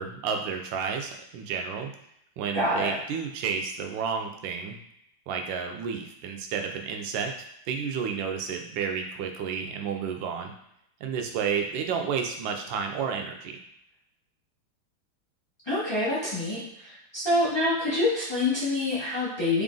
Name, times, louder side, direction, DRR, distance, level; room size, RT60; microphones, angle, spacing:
voice 1, 0.0-1.9 2.4-4.8 5.3-7.3 7.7-10.5 11.0-13.6, right 6 dB, 75° right, 4 dB, 1.1 m, -31 dB
voice 2, 2.5-2.9 15.7-19.6, left 2 dB, 20° left, -9 dB, 0.7 m, -26 dB
3.6 x 2.5 x 3.7 m, 0.79 s
omnidirectional pair, 2.4 m